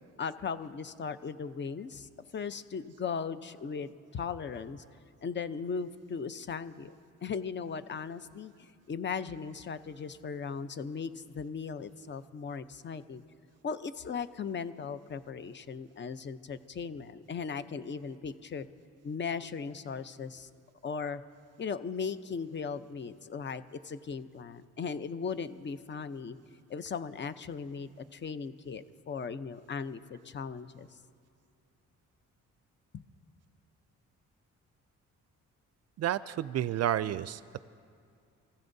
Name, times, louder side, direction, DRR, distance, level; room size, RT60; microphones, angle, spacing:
voice 1, 0.2-4.8 5.2-6.9 7.2-13.2 13.6-18.7 19.0-20.5 20.8-21.2 21.6-26.4 26.7-30.9 32.9-33.0, left 5 dB, 35° left, 12 dB, 0.7 m, -38 dB
voice 2, 36.0-37.6, right 11 dB, 55° right, 16 dB, 0.4 m, -31 dB
29.0 x 15.5 x 2.7 m, 2.4 s
cardioid pair, 90°, 30 cm